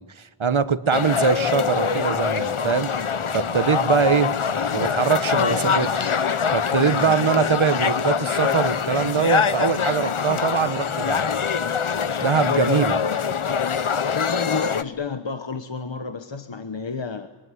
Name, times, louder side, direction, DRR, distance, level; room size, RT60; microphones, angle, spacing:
voice 1, 0.0-4.4 4.7-6.1 6.5-11.2 12.2-13.0, right 6 dB, 70° right, 13 dB, 1.1 m, -23 dB
sound 1, 0.9-14.8, left 6 dB, 85° left, 0.9 m, -24 dB
voice 2, 14.1-17.3, left 4 dB, 60° left, 8 dB, 1.2 m, -30 dB
25.5 x 22.5 x 9.7 m, 1.2 s
wide cardioid pair, 45°, 49 cm